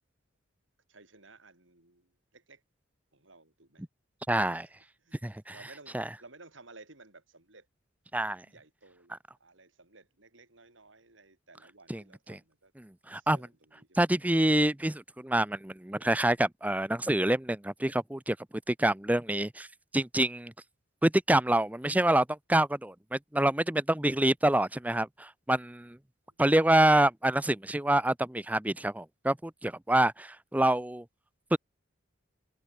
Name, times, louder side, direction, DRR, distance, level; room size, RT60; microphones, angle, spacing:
voice 1, 0.9-2.6 3.1-3.8 4.6-4.7 5.0-5.2 5.5-7.7 8.2-12.7 13.1-14.0 26.3-26.4, right 3 dB, 70° right, 4.3 m, -56 dB
voice 2, 4.3-4.7 5.2-5.5 5.9-6.0 8.1-8.4 11.9-12.0 12.3-12.4 13.1-13.5 14.0-18.4 18.7-19.7 19.9-20.5 21.0-26.0 26.4-31.0 31.5-31.6, right 1 dB, 5° right, 0.6 m, -26 dB
head